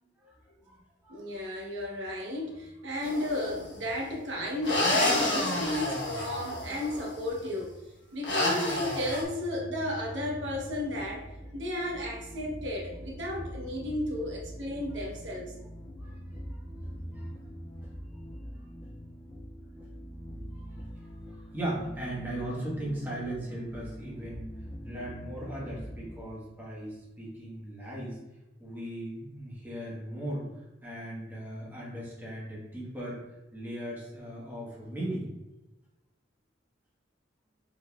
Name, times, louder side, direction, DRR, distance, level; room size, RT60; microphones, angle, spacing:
voice 1, 1.1-7.7 8.1-11.3 11.5-15.5, left 1 dB, 75° right, -2 dB, 1.0 m, -33 dB
sound 1, 3.0-3.6 4.6-7.1 8.2-9.2, left 1 dB, 65° left, 1.2 m, -29 dB
sound 2, 10.5-26.2, equal, 15° left, 0.4 m, -43 dB
voice 2, 21.5-24.5 24.9-28.2 28.6-30.4 30.8-33.2 33.5-35.3, right 1 dB, 10° right, -5 dB, 1.2 m, -37 dB
5.0 x 3.9 x 2.3 m, 0.99 s
head